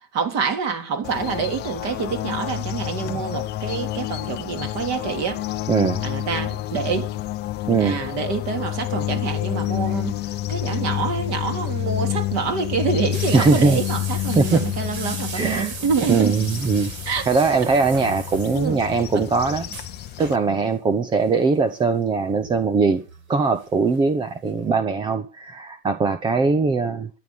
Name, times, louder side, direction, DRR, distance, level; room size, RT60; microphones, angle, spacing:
voice 1, 0.1-5.4 6.0-7.1 7.8-10.1 10.5-16.3 17.1-17.3 18.5-18.8 19.1-19.3, right 5 dB, 30° right, 3.4 m, -26 dB
sound 1, 1.0-20.4, left 15 dB, 20° left, 0.9 m, -29 dB
voice 2, 5.7-6.0 7.7-8.0 13.3-13.8 14.4-14.7 15.3-15.7 16.1-16.9 17.3-19.7 20.2-23.0 23.3-27.1, right 4 dB, 10° right, 0.7 m, -21 dB
sound 2, 13.1-19.0 19.3-19.4 19.6-20.5 21.5-21.8 22.4-23.7 23.9-24.0 24.4-24.5, right 5 dB, 60° right, 6.2 m, -37 dB
13.5 x 10.5 x 7.2 m
hypercardioid pair, 125°, 47 cm